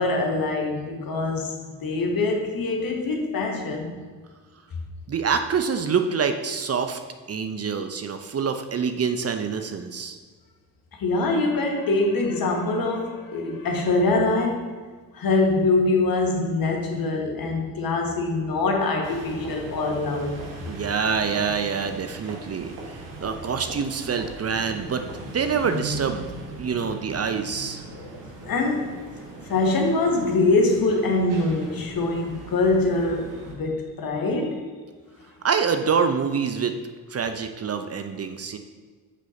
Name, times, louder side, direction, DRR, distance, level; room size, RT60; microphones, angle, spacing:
voice 1, 0.0-3.9 10.9-14.7 15.1-20.4 27.9-28.1 28.4-34.6, left 2 dB, 45° left, 2 dB, 1.7 m, -24 dB
voice 2, 5.1-7.0 7.3-10.2 20.7-25.0 25.3-26.2 26.6-27.8 35.4-36.7 37.1-38.6, right 6 dB, 30° right, 7 dB, 0.7 m, -26 dB
sound 1, 19.0-33.5, right 2 dB, 60° right, 1.8 m, -39 dB
9.6 x 6.1 x 2.9 m, 1.5 s
hypercardioid pair, 50°, 48 cm